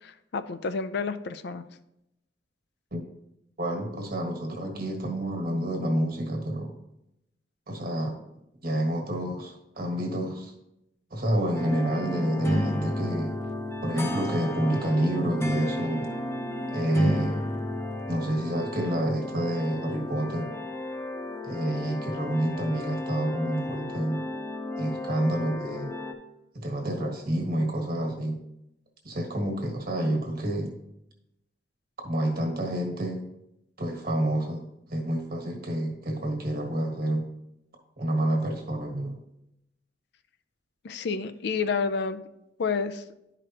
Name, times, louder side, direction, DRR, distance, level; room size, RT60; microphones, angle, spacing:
voice 1, 0.0-1.6 40.8-42.2 42.6-43.0, left 5 dB, 65° left, 11 dB, 0.5 m, -29 dB
voice 2, 3.6-6.7 7.7-8.2 8.6-10.5 11.1-13.3 13.8-16.1 16.7-17.4 18.1-20.5 21.4-24.2 24.8-25.9 26.5-28.4 29.0-30.7 32.0-33.2 33.8-37.3 38.0-39.2, right 1 dB, 55° right, 1 dB, 1.6 m, -28 dB
sound 1, 11.6-26.1, left 1 dB, 15° left, 0.8 m, -33 dB
11.5 x 5.0 x 2.9 m, 0.84 s
head